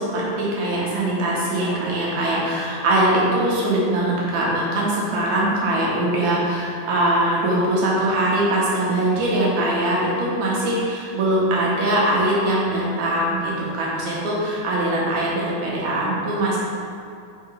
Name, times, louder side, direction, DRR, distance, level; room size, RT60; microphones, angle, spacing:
voice 1, 0.0-16.6, right 1 dB, 70° right, -5 dB, 2.2 m, -22 dB
4.7 x 4.4 x 4.6 m, 2.5 s
omnidirectional pair, 3.8 m